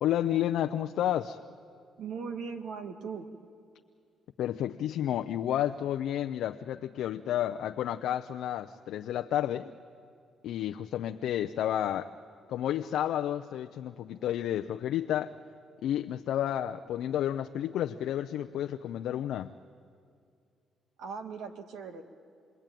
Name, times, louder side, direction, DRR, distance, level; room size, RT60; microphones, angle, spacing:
voice 1, 0.0-1.4 4.4-9.7 10.4-12.1 12.5-15.3 15.8-19.5, left 11 dB, 80° left, 6 dB, 0.6 m, -31 dB
voice 2, 2.0-3.3 21.0-22.0, right 5 dB, 80° right, 7 dB, 1.8 m, -39 dB
27.5 x 20.5 x 9.1 m, 2.3 s
cardioid pair, 90°, 0 cm